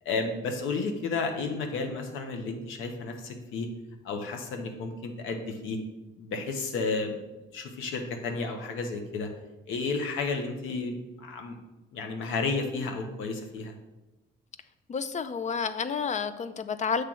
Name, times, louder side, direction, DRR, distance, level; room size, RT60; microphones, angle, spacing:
voice 1, 0.0-3.7 4.0-5.8 6.2-7.2 7.5-9.3 9.7-11.6 11.9-13.7, left 4 dB, 85° left, 5 dB, 1.0 m, -32 dB
voice 2, 14.9-17.0, left 6 dB, 35° left, 12 dB, 0.5 m, -30 dB
7.6 x 3.3 x 6.2 m, 1.1 s
cardioid pair, 90°, 20 cm